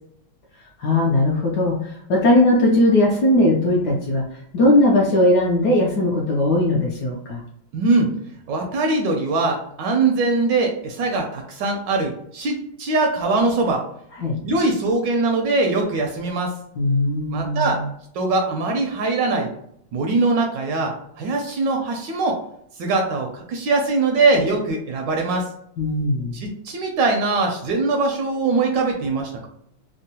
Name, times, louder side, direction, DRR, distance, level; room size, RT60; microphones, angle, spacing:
voice 1, 0.8-1.8 2.1-4.2 4.5-7.4 14.2-14.4 16.8-17.8 25.8-26.3, left 1 dB, 70° left, -2 dB, 1.0 m, -18 dB
voice 2, 7.7-8.1 8.5-13.8 14.4-16.5 17.3-17.8 18.1-19.5 19.9-22.4 22.8-25.5 26.3-29.5, right 3 dB, 75° right, 2 dB, 1.1 m, -22 dB
3.6 x 2.1 x 2.7 m, 0.71 s
omnidirectional pair, 2.2 m